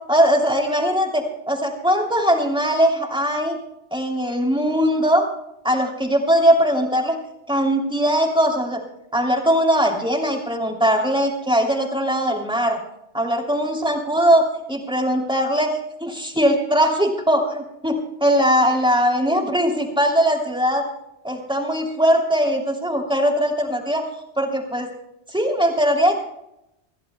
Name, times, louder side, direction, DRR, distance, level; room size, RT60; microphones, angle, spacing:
voice 1, 0.1-3.6 3.9-5.3 5.6-7.2 7.5-8.8 9.1-12.8 13.1-15.7 16.0-20.8 21.2-24.1 24.4-24.9 25.3-26.2, equal, 5° right, 0 dB, 2.9 m, -20 dB
25.5 x 16.0 x 2.2 m, 0.85 s
omnidirectional pair, 1.1 m